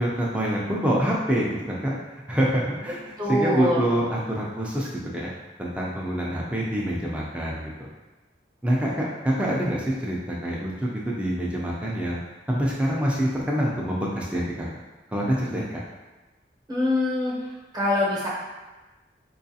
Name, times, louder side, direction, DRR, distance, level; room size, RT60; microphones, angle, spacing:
voice 1, 0.0-5.3 5.6-7.9 8.6-12.2 12.5-14.7 15.1-15.8, equal, 5° right, -5 dB, 0.4 m, -26 dB
voice 2, 3.2-3.8 16.7-17.3 17.7-18.3, left 1 dB, 20° right, -6 dB, 0.8 m, -24 dB
4.6 x 2.4 x 2.7 m, 1.2 s
head